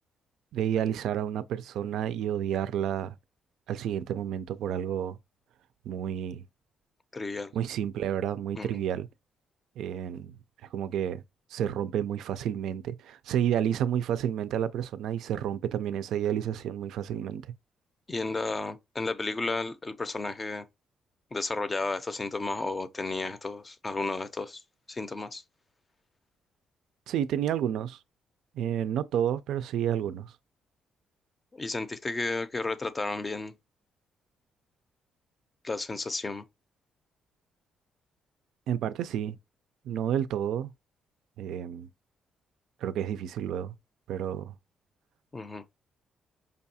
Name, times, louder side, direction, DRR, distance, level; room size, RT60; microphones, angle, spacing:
voice 1, 0.5-3.2 3.7-5.2 5.8-6.4 7.5-9.1 9.8-10.3 10.7-11.2 11.5-17.5 27.1-28.0 28.5-30.3 38.7-39.4 39.8-40.7 41.4-41.9 42.8-43.7 44.1-44.5, right 10 dB, 80° right, 0.3 m, -30 dB
voice 2, 7.1-7.5 8.6-8.8 18.1-20.7 21.3-24.6 24.9-25.4 31.5-33.5 35.6-36.4 45.3-45.6, left 3 dB, 25° left, 0.5 m, -33 dB
5.2 x 2.3 x 2.7 m
cardioid pair, 90°, 0 cm